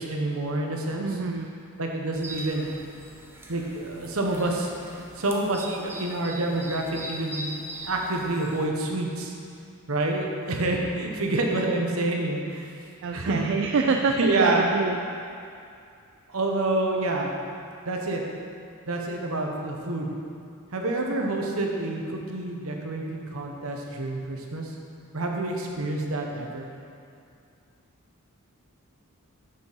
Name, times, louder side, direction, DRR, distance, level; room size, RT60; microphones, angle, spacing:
voice 1, 0.0-1.2 1.8-2.7 3.5-4.7 5.2-7.5 7.8-9.3 9.9-12.7 13.1-13.4 13.8-14.6 16.3-17.3 17.9-18.2 18.9-20.2 20.7-24.7 25.1-26.7, right 2 dB, 75° right, 1 dB, 1.1 m, -28 dB
voice 2, 1.0-1.5 13.0-15.0, right 4 dB, 55° right, 3 dB, 0.4 m, -25 dB
sound 1, 2.1-8.7, right 1 dB, 10° right, 0.7 m, -41 dB
6.8 x 6.6 x 5.6 m, 2.5 s
head